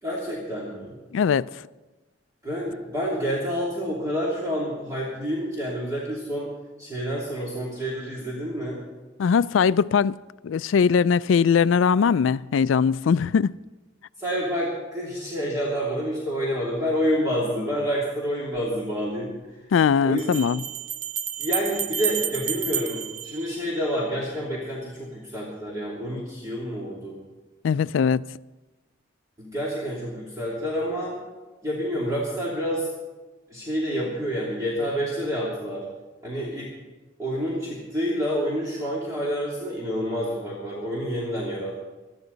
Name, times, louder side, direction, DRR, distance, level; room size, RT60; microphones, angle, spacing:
voice 1, 0.0-0.9 2.4-6.5 6.8-8.8 14.2-19.3 20.0-20.3 21.4-27.2 29.4-31.2 31.6-32.9 33.5-35.8 36.2-36.7 37.2-41.7, equal, 20° right, 2.9 m, -28 dB
voice 2, 1.1-1.5 9.2-10.2 10.4-13.6 19.7-20.6 27.6-28.2, left 6 dB, 80° left, 0.3 m, -20 dB
sound 1, 18.6-18.7 20.2-24.1, right 8 dB, 40° right, 0.7 m, -31 dB
20.5 x 13.0 x 4.0 m
head